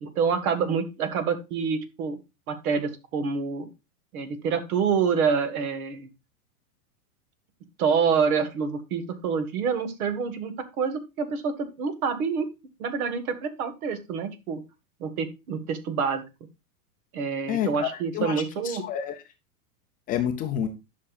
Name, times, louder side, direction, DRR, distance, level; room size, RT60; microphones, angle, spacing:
voice 1, 0.0-2.2 2.5-3.7 4.1-6.1 7.8-12.5 12.8-14.6 15.0-16.2 17.1-18.8, right 6 dB, 70° right, 11 dB, 1.6 m, -27 dB
voice 2, 17.5-18.3 18.6-19.2 20.1-20.7, left 10 dB, 20° left, 5 dB, 0.4 m, -28 dB
11.0 x 5.9 x 2.3 m, 0.26 s
supercardioid pair, 140°, 45 cm